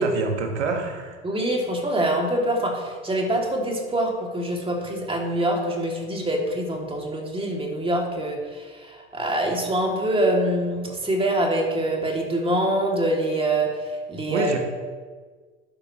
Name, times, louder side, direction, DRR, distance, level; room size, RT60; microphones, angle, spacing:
voice 1, 0.0-1.2 14.3-14.6, right 4 dB, 85° right, 3 dB, 1.6 m, -27 dB
voice 2, 1.2-14.6, right 1 dB, 15° right, 0 dB, 2.6 m, -25 dB
11.5 x 9.7 x 3.1 m, 1.5 s
hypercardioid pair, 80°, 34 cm